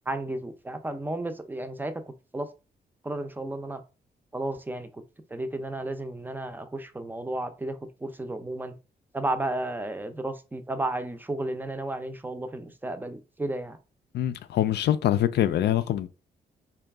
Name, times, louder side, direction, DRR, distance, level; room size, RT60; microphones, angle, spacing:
voice 1, 0.1-2.0 2.3-2.5 3.0-3.8 4.3-5.0 5.3-8.8 9.1-13.8, right 2 dB, 10° right, 0.5 m, -33 dB
voice 2, 14.1-16.1, left 11 dB, 80° left, 0.4 m, -24 dB
3.8 x 2.3 x 3.4 m
cardioid pair, 100°, 17 cm